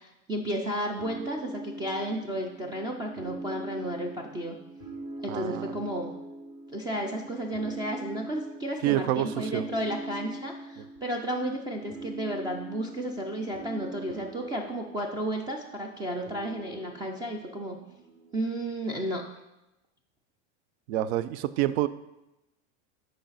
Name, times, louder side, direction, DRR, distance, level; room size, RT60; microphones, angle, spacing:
voice 1, 0.0-4.6 5.2-6.1 6.7-17.8 18.3-19.3, right 1 dB, 15° right, 2 dB, 0.3 m, -33 dB
sound 1, 1.0-18.4, right 2 dB, 40° right, 2.3 m, -43 dB
voice 2, 5.3-5.7 8.8-9.6 20.9-21.9, right 13 dB, 70° right, 16 dB, 0.5 m, -27 dB
8.5 x 5.1 x 4.0 m, 0.93 s
supercardioid pair, 155°, 35 cm